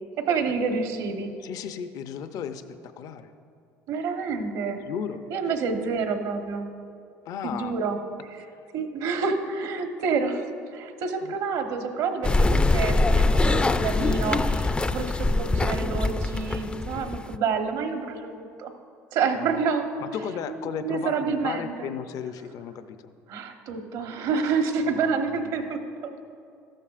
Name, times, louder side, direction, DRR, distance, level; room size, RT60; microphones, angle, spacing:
voice 1, 0.2-1.3 3.9-4.8 5.3-6.7 7.4-8.0 8.3-8.4 8.7-18.7 19.1-19.9 20.5-21.9 23.3-26.2, right 5 dB, 70° right, 5 dB, 1.1 m, -28 dB
voice 2, 1.4-3.3 4.8-5.2 7.3-7.7 8.4-8.7 11.2-11.3 16.9-17.1 19.4-19.5 20.0-23.0 24.9-25.6, left 8 dB, 60° left, 10 dB, 0.6 m, -35 dB
sound 1, 12.2-17.4, left 2 dB, 15° left, 0.4 m, -23 dB
14.0 x 13.0 x 2.5 m, 2.4 s
supercardioid pair, 85°, 7 cm